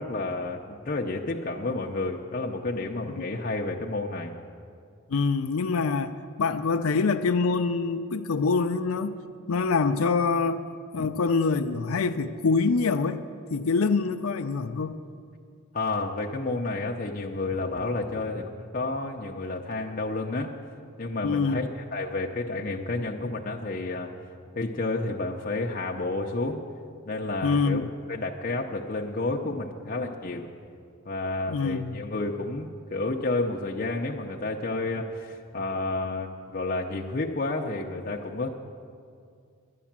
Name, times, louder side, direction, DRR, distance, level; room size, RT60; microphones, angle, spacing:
voice 1, 0.0-4.3 11.0-11.1 15.7-20.5 21.0-24.1 24.6-26.6 27.0-27.8 28.1-30.5 31.1-38.5, left 2 dB, 40° left, -1 dB, 0.6 m, -30 dB
voice 2, 5.1-9.2 9.5-10.6 10.9-13.2 13.5-15.0 21.2-21.6 27.4-27.9 31.5-32.0, left 4 dB, 85° left, 8 dB, 0.5 m, -25 dB
11.0 x 10.5 x 7.3 m, 2.3 s
head